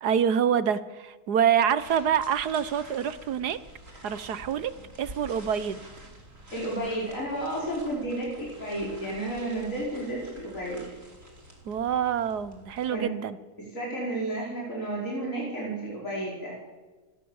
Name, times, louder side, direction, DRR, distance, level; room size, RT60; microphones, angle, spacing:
voice 1, 0.0-3.6 4.0-4.7 5.0-5.8 11.6-13.4, right 8 dB, 75° right, 14 dB, 1.6 m, -26 dB
sound 1, 1.8-12.9, right 1 dB, 50° right, 4.5 m, -48 dB
voice 2, 6.5-10.9 12.9-13.1 13.6-16.6, right 1 dB, 50° left, -4 dB, 5.8 m, -32 dB
28.5 x 20.0 x 7.2 m, 1.3 s
omnidirectional pair, 1.7 m